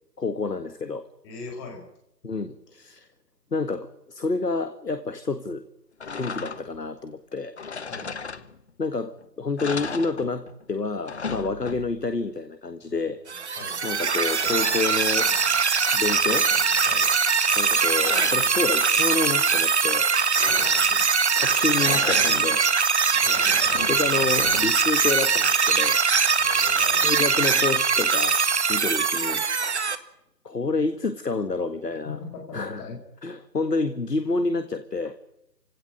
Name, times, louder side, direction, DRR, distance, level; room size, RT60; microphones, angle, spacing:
voice 1, 0.2-1.1 2.2-3.1 3.5-5.7 6.1-7.6 8.8-13.2 13.6-15.3 15.9-16.5 17.2-20.1 21.4-22.7 23.4-26.0 27.0-28.4 28.7-29.4 30.4-32.2 32.5-35.2, left 3 dB, 75° left, 10 dB, 1.9 m, -29 dB
voice 2, 1.2-1.8 7.9-8.1 12.8-12.9 13.6-13.8 16.9-17.1 20.4-20.7 23.2-23.9 26.4-27.1 32.0-33.0, left 4 dB, 15° left, 3 dB, 4.7 m, -40 dB
sound 1, 6.0-6.9 7.6-8.8 9.2-9.3 9.6-10.6 10.9-12.2 13.9-15.6 16.0-17.0 17.6-18.6 20.4-21.2 21.6-22.7 23.1-24.9, left 5 dB, 40° left, 1.2 m, -36 dB
sound 2, 13.3-30.0, right 5 dB, 45° right, 1.9 m, -22 dB
28.0 x 17.5 x 8.9 m, 0.83 s
figure-of-eight pair, 150°, 49 cm